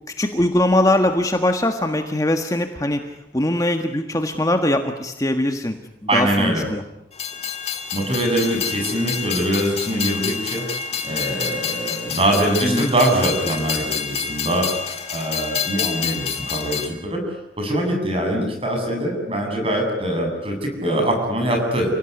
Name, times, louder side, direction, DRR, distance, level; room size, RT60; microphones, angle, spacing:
voice 1, 0.2-3.0 3.3-5.8 6.1-6.8 12.6-12.9, left 1 dB, 20° left, 5 dB, 1.5 m, -21 dB
voice 2, 6.1-6.6 7.9-10.6 11.0-14.8 15.1-21.9, right 1 dB, 30° right, 3 dB, 7.5 m, -23 dB
Train, 7.1-16.9, left 7 dB, 35° left, 2.6 m, -28 dB
29.5 x 18.0 x 9.7 m, 0.85 s
head